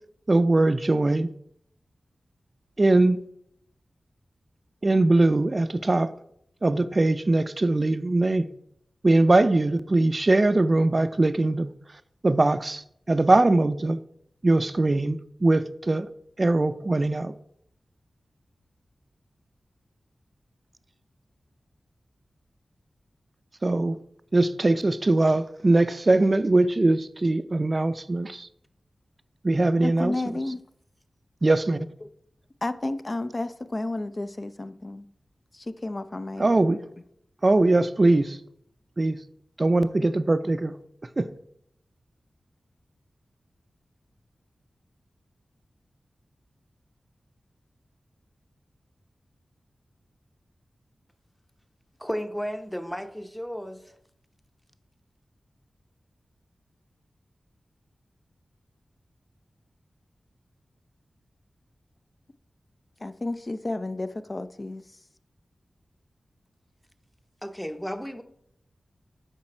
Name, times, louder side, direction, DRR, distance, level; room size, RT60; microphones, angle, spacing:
voice 1, 0.3-1.3 2.8-3.2 4.8-6.1 6.6-8.5 9.0-11.7 12.2-14.0 14.4-16.1 16.4-17.3 23.6-24.0 24.3-28.5 29.4-30.1 31.4-31.8 36.4-36.8 37.4-38.4 39.0-39.2 39.6-40.8 41.2-41.3, right 2 dB, 45° right, 0.4 m, -21 dB
voice 2, 29.8-30.6 32.6-35.0 35.5-36.5 63.0-64.8, left 2 dB, 40° left, 0.5 m, -31 dB
voice 3, 52.0-54.0 67.4-68.2, equal, 5° left, 0.8 m, -33 dB
7.4 x 4.8 x 4.4 m
cardioid pair, 45°, 0 cm